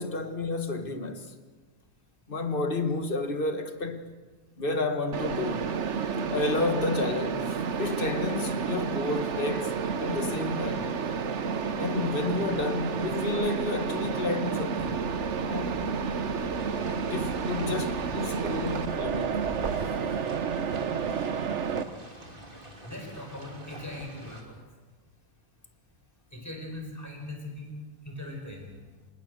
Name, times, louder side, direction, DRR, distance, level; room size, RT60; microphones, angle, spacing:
voice 1, 0.0-1.3 2.3-4.1 4.6-5.7 6.3-11.0 11.8-15.1 15.4-15.8 17.1-19.4, left 3 dB, 30° left, 1.5 m, -31 dB
Mechanisms, 5.1-21.8, right 6 dB, 50° right, 0.9 m, -30 dB
sound 1, 14.8-19.9, left 6 dB, 60° left, 1.6 m, -44 dB
sound 2, 16.5-24.4, right 1 dB, 25° right, 3.2 m, -46 dB
voice 2, 22.8-24.5 26.3-27.8 28.1-28.8, left 1 dB, 10° left, 5.2 m, -40 dB
26.0 x 20.0 x 6.6 m
omnidirectional pair, 2.2 m